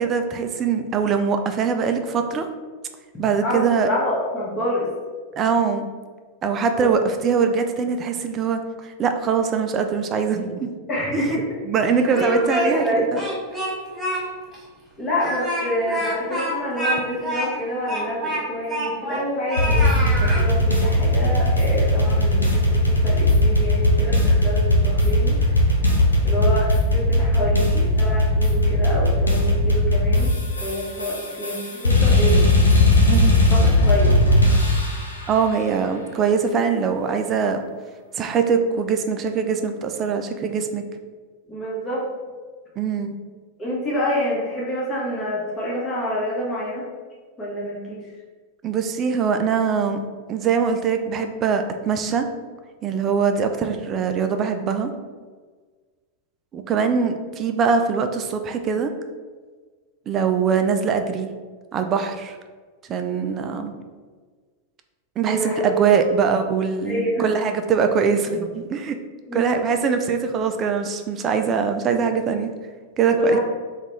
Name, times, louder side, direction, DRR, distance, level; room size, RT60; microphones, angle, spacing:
voice 1, 0.0-2.5 3.2-3.9 5.4-5.9 6.4-10.7 11.3-11.4 11.7-13.2 33.1-33.4 35.3-37.6 38.1-40.8 42.8-43.2 48.6-50.0 50.3-52.3 52.8-54.9 56.5-58.9 60.1-61.3 61.7-62.4 62.9-63.7 65.2-69.0 69.3-72.5 73.0-73.4, right 6 dB, 30° right, 6 dB, 0.3 m, -22 dB
voice 2, 3.4-4.9 6.8-6.9 10.9-11.6 12.0-13.1 15.0-25.6 26.2-30.3 30.6-32.5 33.5-34.2 41.5-42.1 43.6-46.9 47.4-48.1 65.3-66.1 66.8-67.3 69.3-69.5 73.2-73.4, equal, 20° left, -6 dB, 1.2 m, -27 dB
Speech, 11.9-12.9 13.2-14.2 14.5-14.6 15.1-19.2 19.5-20.4, right 1 dB, 15° right, 0.9 m, -27 dB
sound 1, 19.6-35.1, left 1 dB, 80° left, 0.5 m, -18 dB
3.5 x 2.3 x 3.0 m, 1.5 s
figure-of-eight pair, 90°, 0 cm